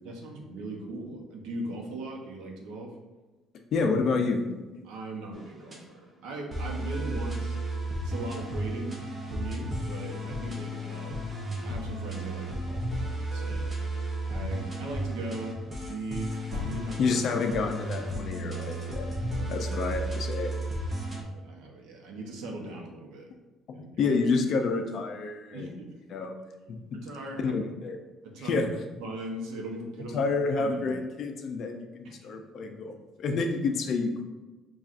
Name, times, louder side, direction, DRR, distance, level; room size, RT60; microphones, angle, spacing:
voice 1, 0.0-2.9 4.8-7.6 8.0-11.3 11.6-13.7 14.3-16.3 16.6-17.2 19.1-19.9 21.0-23.3 23.7-24.2 25.5-25.9 26.7-27.6 28.2-28.7 29.0-30.2 30.6-31.0 32.0-32.2 33.3-33.4, right 1 dB, 85° right, 0 dB, 0.8 m, -39 dB
voice 2, 3.7-4.4 17.0-19.1 19.5-20.5 23.8-25.8 26.1-26.3 26.7-27.0 27.4-28.0 28.4-28.6 30.1-34.2, left 4 dB, 45° left, 4 dB, 0.4 m, -29 dB
sound 1, 5.3-5.8 6.5-21.2, right 1 dB, 20° right, 0.5 m, -33 dB
sound 2, 14.0-14.2 16.3-17.3, left 3 dB, 55° right, 0.8 m, -39 dB
5.6 x 2.4 x 2.4 m, 1.2 s
cardioid pair, 160°, 0 cm